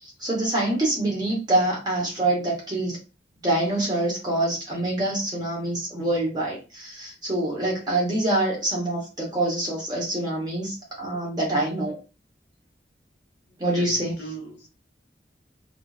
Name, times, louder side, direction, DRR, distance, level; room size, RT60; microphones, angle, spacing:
voice 1, 0.0-3.0 3.4-12.0 13.6-14.1, right 1 dB, 25° right, 0.9 m, -25 dB
voice 2, 13.7-14.7, right 2 dB, 85° left, 0.8 m, -39 dB
2.5 x 2.4 x 2.3 m
head